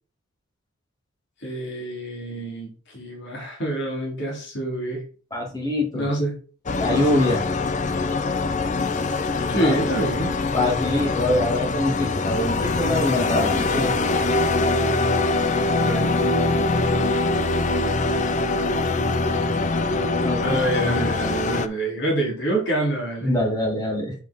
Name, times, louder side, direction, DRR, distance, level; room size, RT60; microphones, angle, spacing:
voice 1, 1.4-5.0 5.9-6.4 6.9-7.2 9.5-10.3 15.8-16.1 20.4-23.3, right 1 dB, 55° left, -2 dB, 2.8 m, -26 dB
voice 2, 5.3-6.1 6.8-7.4 9.6-9.7 10.5-13.9 20.2-20.6 23.2-24.2, left 1 dB, 20° left, 1 dB, 1.9 m, -24 dB
sound 1, 6.7-21.7, left 3 dB, 35° left, 0.5 m, -23 dB
7.2 x 4.9 x 4.0 m, 0.38 s
head